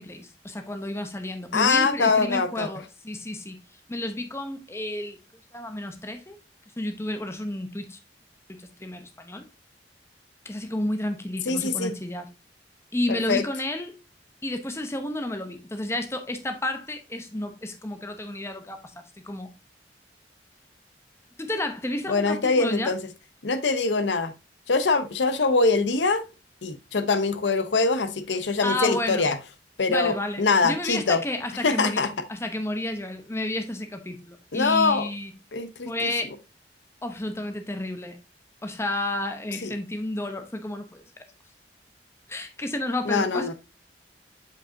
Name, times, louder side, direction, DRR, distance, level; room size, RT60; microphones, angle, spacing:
voice 1, 0.0-3.6 3.9-5.2 5.5-6.4 6.8-8.0 8.5-9.5 10.4-12.3 12.9-13.9 14.4-18.8 19.2-19.5 21.4-22.9 28.6-29.3 29.9-35.3 35.9-36.3 37.0-38.2 38.6-41.0 42.3-43.5, left 1 dB, 15° left, 0.8 m, -31 dB
voice 2, 1.5-2.7 11.5-11.9 13.1-13.4 22.1-23.0 23.4-24.3 24.7-26.2 26.6-29.4 29.8-31.2 31.6-32.1 34.5-35.1 35.5-36.1 39.6-39.7 43.1-43.5, left 4 dB, 85° left, 0.8 m, -23 dB
7.6 x 4.9 x 2.7 m
head